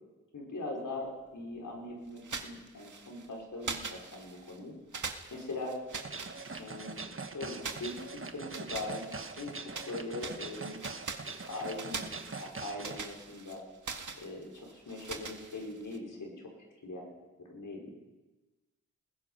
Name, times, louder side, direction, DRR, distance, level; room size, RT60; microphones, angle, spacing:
voice 1, 0.3-4.7 5.3-5.8 6.6-7.1 7.3-9.0 9.3-10.8 11.5-13.6 14.2-16.5 16.8-17.1 17.5-17.9, left 2 dB, 85° left, -1 dB, 5.4 m, -41 dB
sound 1, 2.2-3.3 3.6-4.6 4.9-7.0 7.6-9.9 10.2-16.0, right 4 dB, 75° right, 1.9 m, -43 dB
sound 2, 5.9-13.0, right 4 dB, 40° right, 1.4 m, -43 dB
26.5 x 20.5 x 5.7 m, 1.2 s
wide cardioid pair, 105°, 31 cm